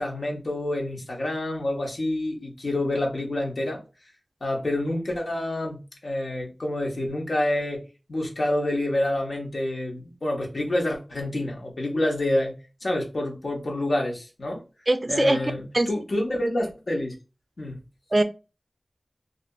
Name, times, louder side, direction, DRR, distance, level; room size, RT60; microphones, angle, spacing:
voice 1, 0.0-3.8 4.4-7.8 8.1-12.5 12.8-14.6 15.1-17.1 17.6-17.8, left 1 dB, 80° left, 0 dB, 0.8 m, -27 dB
voice 2, 14.9-15.9 18.1-18.2, right 2 dB, 45° right, 9 dB, 0.3 m, -23 dB
2.6 x 2.4 x 2.2 m, 0.30 s
wide cardioid pair, 55°, 0 cm